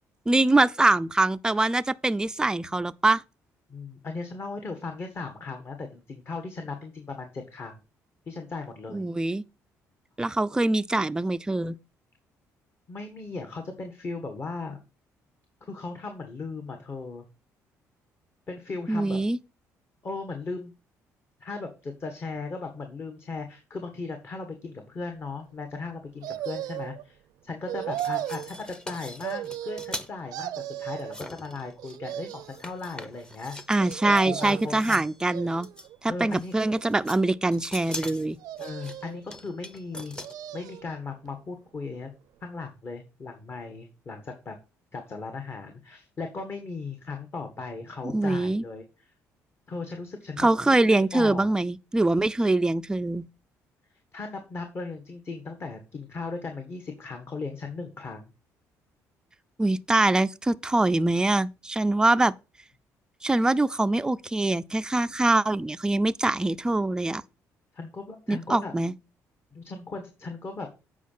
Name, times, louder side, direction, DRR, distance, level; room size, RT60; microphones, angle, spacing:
voice 1, 0.3-3.2 8.9-9.4 10.2-11.8 18.9-19.4 33.7-35.7 36.0-38.4 48.0-48.6 50.4-53.2 59.6-62.3 63.2-67.2 68.3-68.9, right 2 dB, 10° right, 0.4 m, -24 dB
voice 2, 3.7-7.8 8.3-9.0 12.9-14.8 15.7-17.2 18.5-19.2 20.0-20.7 21.4-27.2 27.4-33.6 34.0-35.0 36.1-36.6 38.6-40.1 40.5-42.1 42.4-44.5 44.9-48.8 49.7-51.5 54.1-58.3 67.7-68.7 69.5-70.9, left 3 dB, 40° left, 1.6 m, -37 dB
sound 1, 26.2-27.0 27.7-28.5 29.2-30.0 30.3-31.2 31.8-32.6 33.8-34.7 35.3-36.0 36.6-37.4 38.4-39.2 39.9-40.9 41.3-41.4, right 13 dB, 80° right, 0.6 m, -36 dB
sound 2, 27.8-30.1 31.0-32.0 32.3-35.2 35.6-35.9 36.3-37.2 37.5-40.3, left 1 dB, 10° left, 0.9 m, -42 dB
8.3 x 5.1 x 5.6 m
cardioid pair, 95°, 6 cm